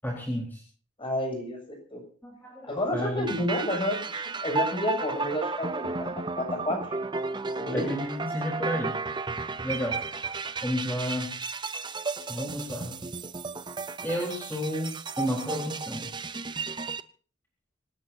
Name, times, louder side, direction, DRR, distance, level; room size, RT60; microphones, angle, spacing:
voice 1, 0.0-0.6 2.2-3.3 7.7-9.0 9.6-10.0 10.6-11.3 12.3-13.0 14.0-16.1, equal, 10° left, -3 dB, 4.2 m, -31 dB
voice 2, 1.0-2.0 2.6-6.9 7.6-7.9, left 1 dB, 25° left, 3 dB, 7.3 m, -30 dB
sound 1, 3.3-17.0, right 4 dB, 20° right, 0.7 m, -34 dB
25.0 x 18.5 x 2.8 m, 0.42 s
head